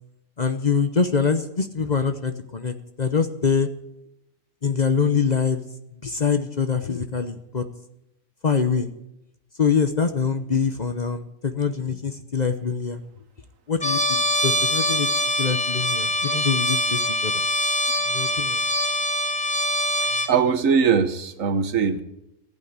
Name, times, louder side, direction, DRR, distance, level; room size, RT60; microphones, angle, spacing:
voice 1, 0.4-3.7 4.6-5.6 6.0-7.6 8.4-8.9 9.6-13.0 13.7-15.1 15.4-17.5 18.1-18.6, left 5 dB, 35° left, 9 dB, 0.9 m, -24 dB
Trumpet, 13.8-20.3, left 1 dB, 5° left, 1.0 m, -23 dB
voice 2, 20.0-22.0, right 6 dB, 75° right, 11 dB, 1.4 m, -21 dB
15.0 x 8.7 x 8.6 m, 0.84 s
omnidirectional pair, 1.4 m